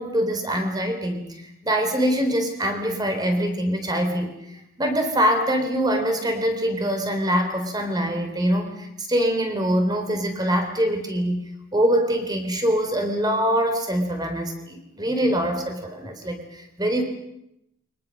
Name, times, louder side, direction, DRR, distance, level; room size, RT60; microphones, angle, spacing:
voice 1, 0.0-4.3 4.8-17.0, equal, 20° right, 5 dB, 4.0 m, -24 dB
29.0 x 24.0 x 6.5 m, 0.82 s
head